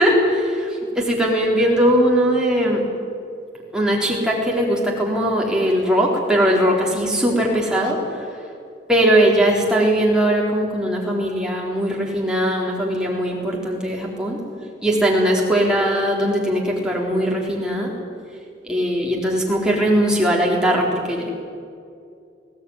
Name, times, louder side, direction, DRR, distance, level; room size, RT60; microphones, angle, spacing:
voice 1, 0.0-2.9 3.7-8.0 8.9-14.4 14.8-17.9 18.6-21.3, equal, 5° right, -2 dB, 3.8 m, -19 dB
21.0 x 16.5 x 9.7 m, 2.3 s
head